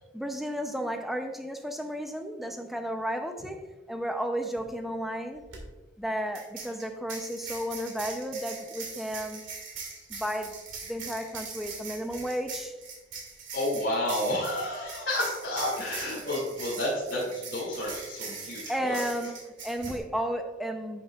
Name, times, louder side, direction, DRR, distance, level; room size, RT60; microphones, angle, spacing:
voice 1, 0.1-5.5 6.0-9.4 10.1-10.6 10.9-12.7 18.7-21.0, equal, ahead, 5 dB, 0.6 m, -33 dB
sound 1, 5.4-5.6 6.3-20.0, right 4 dB, 90° right, 2.2 m, -41 dB
voice 2, 13.5-19.0, left 1 dB, 75° left, -8 dB, 2.5 m, -30 dB
10.5 x 7.3 x 2.4 m, 1.3 s
head